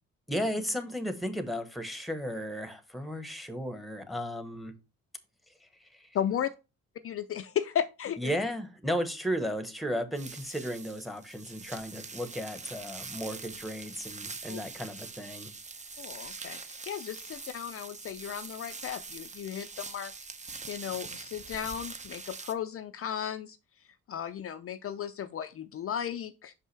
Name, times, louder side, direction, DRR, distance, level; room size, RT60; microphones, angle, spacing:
voice 1, 0.3-4.7 5.6-6.1 8.2-15.5, equal, ahead, 1.1 m, -34 dB
voice 2, 6.1-6.5 7.0-8.3 14.5-14.6 16.0-20.1 20.7-23.6 24.1-26.5, left 9 dB, 50° left, 0.5 m, -35 dB
sound 1, 10.1-22.5, right 4 dB, 25° right, 0.7 m, -43 dB
5.8 x 5.5 x 3.2 m
cardioid pair, 90°, 30 cm